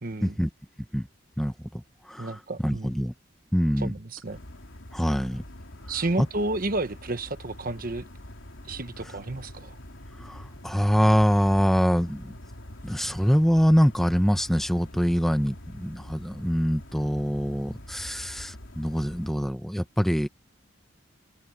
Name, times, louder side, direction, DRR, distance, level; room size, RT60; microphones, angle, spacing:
voice 1, 0.0-0.3 2.2-2.9 3.8-4.4 5.9-8.1 8.7-9.8, right 2 dB, 45° right, 1.2 m, -31 dB
voice 2, 1.4-3.1 3.5-3.9 4.9-5.4 6.2-6.3 9.0-9.1 10.2-12.3 12.8-20.3, equal, ahead, 1.0 m, -24 dB
sound 1, 4.2-19.3, left 1 dB, 90° left, 3.0 m, -45 dB
open air
head